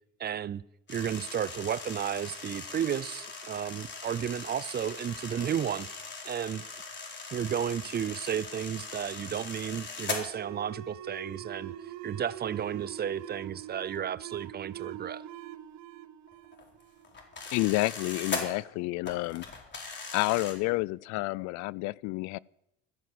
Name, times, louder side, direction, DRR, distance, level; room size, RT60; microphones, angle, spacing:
voice 1, 0.2-0.6 0.9-5.9 6.2-6.6 7.3-11.7 12.0-15.2, right 9 dB, 30° right, 0.5 m, -33 dB
sound 1, 0.9-10.2 13.9-14.0 14.4-14.6 16.3-18.5 19.0-20.5, left 4 dB, 35° left, 4.1 m, -40 dB
sound 2, 10.3-17.5, right 11 dB, 60° right, 1.1 m, -44 dB
voice 2, 17.5-19.4 20.1-22.4, left 22 dB, 65° left, 0.4 m, -29 dB
14.5 x 9.3 x 7.8 m
supercardioid pair, 80°, 31 cm